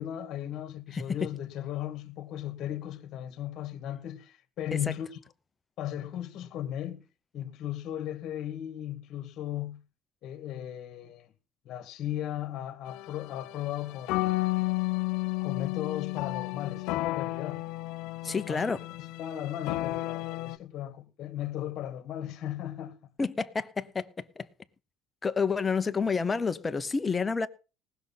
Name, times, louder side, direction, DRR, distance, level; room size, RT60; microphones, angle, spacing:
voice 1, 0.0-5.1 5.8-7.0 7.3-9.8 10.2-11.3 11.7-14.4 15.4-17.6 18.2-23.1, left 11 dB, 55° left, 1.8 m, -36 dB
sound 1, 12.9-20.6, left 19 dB, 80° left, 0.7 m, -32 dB
voice 2, 18.2-18.8 23.2-24.5 25.2-27.5, left 5 dB, 20° left, 1.0 m, -29 dB
19.0 x 6.5 x 5.7 m
cardioid pair, 115°, 0 cm